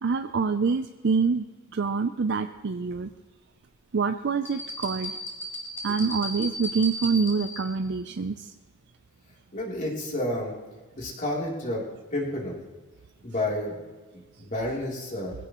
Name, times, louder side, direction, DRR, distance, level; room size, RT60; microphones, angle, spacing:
voice 1, 0.0-1.5 1.7-3.1 3.9-5.1 5.8-8.5, right 5 dB, 55° right, 9 dB, 0.5 m, -26 dB
sound 1, 4.5-7.8, equal, 10° left, 3.0 m, -35 dB
voice 2, 9.5-10.5 11.0-11.8 12.1-12.6 13.2-13.8 14.1-15.3, left 1 dB, 35° left, -3 dB, 3.2 m, -30 dB
22.0 x 16.0 x 3.1 m, 1.3 s
head